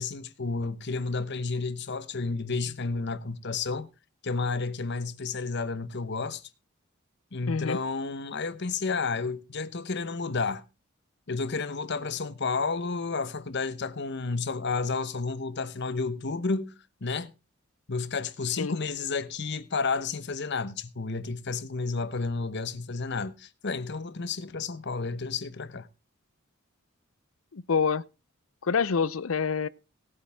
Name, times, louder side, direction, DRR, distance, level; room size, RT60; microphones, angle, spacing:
voice 1, 0.0-3.9 4.2-6.4 7.3-10.6 11.3-16.7 17.0-17.3 17.9-25.9, left 4 dB, 55° left, 1.0 m, -31 dB
voice 2, 7.5-7.8 18.6-18.8 27.5-28.0 28.6-29.7, left 5 dB, 80° left, 0.6 m, -26 dB
18.0 x 8.7 x 3.4 m
head